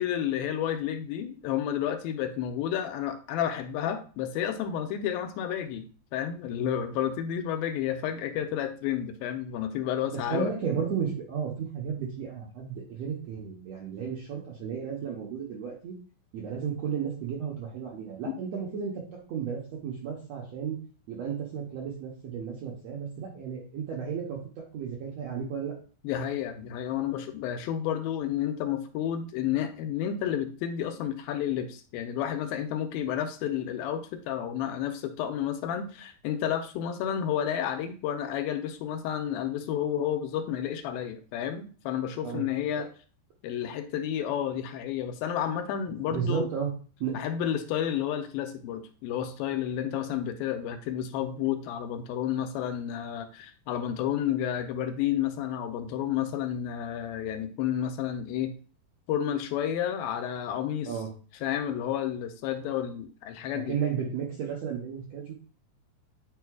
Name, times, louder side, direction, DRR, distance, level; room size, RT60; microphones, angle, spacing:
voice 1, 0.0-10.5 18.2-18.3 26.0-42.9 43.4-46.5 47.1-58.5 59.1-60.9 61.4-63.8, left 10 dB, 80° left, 8 dB, 2.4 m, -31 dB
voice 2, 10.3-15.9 16.3-19.0 19.3-20.8 21.1-25.7 42.2-42.4 42.7-42.8 46.1-46.7 47.0-47.1 60.8-61.1 63.5-65.3, right 7 dB, 70° right, -2 dB, 1.6 m, -33 dB
9.2 x 4.7 x 2.3 m, 0.38 s
omnidirectional pair, 4.3 m